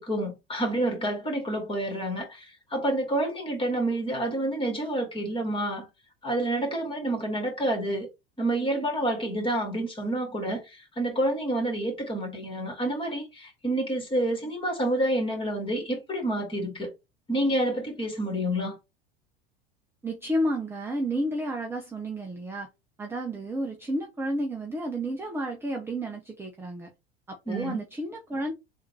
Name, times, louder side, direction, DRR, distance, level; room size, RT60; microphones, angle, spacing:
voice 1, 0.0-5.9 6.2-8.1 8.4-16.9 17.3-18.8 27.5-27.9, right 1 dB, 15° left, 2.1 m, -28 dB
voice 2, 20.0-22.7 23.0-26.9 27.3-28.5, right 1 dB, 5° right, 0.6 m, -31 dB
3.6 x 2.6 x 4.4 m
figure-of-eight pair, 75°, 32 cm